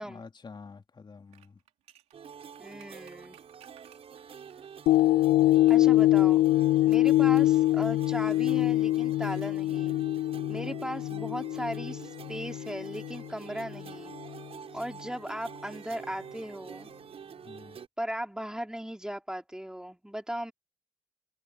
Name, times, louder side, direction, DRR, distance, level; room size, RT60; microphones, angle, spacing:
voice 1, 0.0-1.6 4.9-5.7 17.4-17.8, left 4 dB, 40° left, 2.9 m, -49 dB
sound 1, 1.3-5.1 5.7-6.0 6.9-7.6 7.8-7.9, right 12 dB, 75° right, 3.1 m, -59 dB
sound 2, 2.1-17.9, right 7 dB, 60° right, 6.5 m, -47 dB
voice 2, 2.6-3.4 5.7-6.4 6.8-10.0 10.5-14.1 14.7-16.9 18.0-20.5, equal, 5° right, 3.7 m, -37 dB
sound 3, 4.9-13.3 13.8-13.9, left 16 dB, 80° left, 0.4 m, -24 dB
hypercardioid pair, 40°, 11 cm